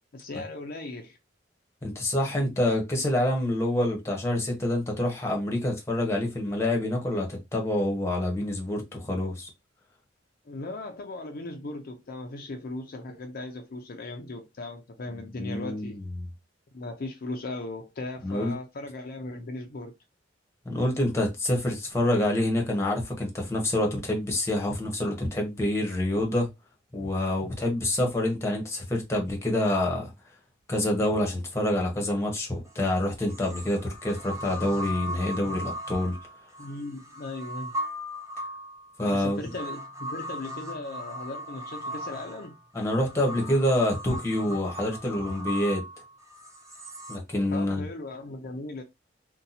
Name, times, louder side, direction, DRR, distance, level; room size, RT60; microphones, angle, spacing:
voice 1, 0.1-1.2 10.5-16.0 16.7-19.9 36.6-37.8 39.0-42.5 47.5-48.8, left 2 dB, 55° left, 0.5 m, -38 dB
voice 2, 1.8-9.5 15.4-15.9 16.2-16.3 18.2-18.5 20.6-26.5 26.9-30.1 30.7-36.2 39.0-39.4 42.7-45.8 47.1-47.9, left 1 dB, 15° left, 1.0 m, -27 dB
sound 1, 32.7-32.8 33.3-47.2, equal, 15° right, 0.6 m, -38 dB
2.7 x 2.2 x 4.0 m
head